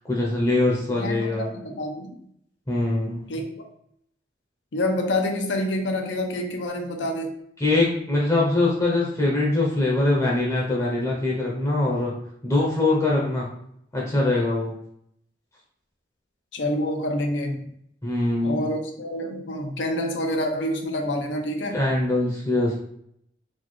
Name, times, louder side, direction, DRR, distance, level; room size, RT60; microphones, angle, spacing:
voice 1, 0.1-1.5 2.7-3.3 7.6-12.1 12.4-13.5 13.9-14.7 18.0-18.6 21.7-22.7, left 2 dB, 20° left, -4 dB, 0.7 m, -23 dB
voice 2, 0.9-2.1 3.3-3.5 4.7-7.4 16.5-17.6 18.4-21.8, left 1 dB, 85° left, 3 dB, 0.6 m, -27 dB
4.0 x 2.3 x 3.2 m, 0.72 s
head